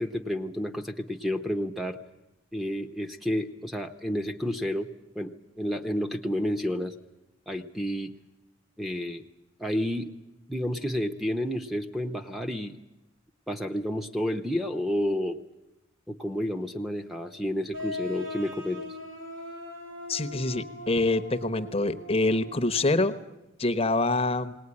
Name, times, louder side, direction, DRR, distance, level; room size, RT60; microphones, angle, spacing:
voice 1, 0.0-2.0 2.5-4.9 5.1-6.9 7.5-8.1 8.8-9.2 9.6-10.1 10.5-12.8 13.5-15.4 16.1-18.8, equal, ahead, 2 dB, 0.8 m, -30 dB
sound 1, 17.7-23.2, left 1 dB, 75° right, 5.4 m, -40 dB
voice 2, 20.1-23.1 23.6-24.6, left 2 dB, 30° left, 11 dB, 0.9 m, -25 dB
19.5 x 19.0 x 9.7 m, 0.94 s
head